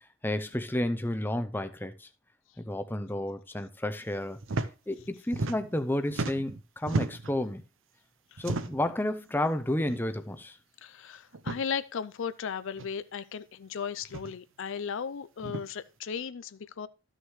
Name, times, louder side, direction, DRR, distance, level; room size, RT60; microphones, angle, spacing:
voice 1, 0.2-2.1 2.6-4.4 4.9-7.6 8.4-10.6, left 1 dB, 10° left, 0.6 m, -31 dB
sound 1, 4.4-4.7 5.0-5.8 6.1-7.4 8.4-8.9 9.8-10.0 10.3-10.4 11.3-11.6 12.8-12.9 14.0-14.3 15.4-15.6, right 2 dB, 65° right, 0.7 m, -33 dB
voice 2, 10.8-16.9, left 6 dB, 65° left, 0.5 m, -36 dB
13.0 x 6.4 x 3.1 m
head